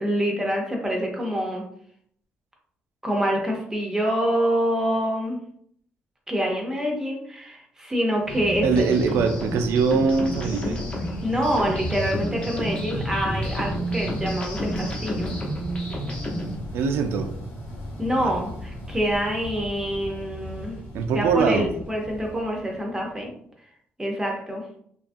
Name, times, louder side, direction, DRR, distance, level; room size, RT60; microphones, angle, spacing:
voice 1, 0.0-1.6 3.0-5.4 6.3-9.2 11.2-15.3 18.0-20.8 21.1-23.3 24.0-24.6, equal, 15° right, 0 dB, 0.5 m, -26 dB
sound 1, 8.2-23.2, equal, 70° left, 1.0 m, -36 dB
sound 2, 8.3-16.6, equal, 30° left, 0.7 m, -31 dB
voice 2, 8.6-10.8 16.7-17.3 18.2-18.3 20.9-21.7, right 5 dB, 85° right, 7 dB, 0.4 m, -22 dB
2.7 x 2.3 x 2.5 m, 0.65 s
cardioid pair, 145°, 4 cm